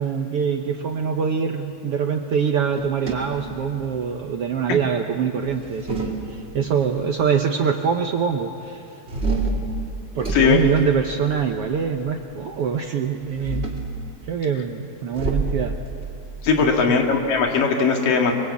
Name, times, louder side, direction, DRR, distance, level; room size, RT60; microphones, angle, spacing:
voice 1, 0.0-8.8 10.1-13.7 14.3-15.7 16.6-17.0, right 7 dB, 70° right, 4 dB, 1.4 m, -24 dB
sound 1, 2.7-4.1 5.4-6.8 9.1-11.7 13.2-14.0 15.1-17.5, right 2 dB, 20° right, 2.4 m, -29 dB
voice 2, 16.4-18.3, left 5 dB, 85° left, 2 dB, 3.8 m, -19 dB
25.5 x 23.0 x 8.4 m, 2.7 s
omnidirectional pair, 3.8 m